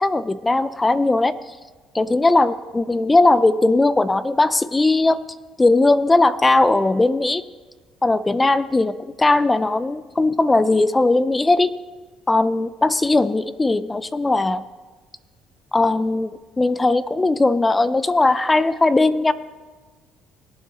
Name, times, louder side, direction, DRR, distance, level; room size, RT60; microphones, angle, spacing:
voice 1, 0.0-1.5 1.9-5.2 5.6-7.4 8.0-11.7 12.3-14.6 15.7-16.3 16.6-19.3, left 2 dB, 15° left, 15 dB, 0.5 m, -18 dB
20.5 x 7.5 x 4.2 m, 1.3 s
supercardioid pair, 85°, 0 cm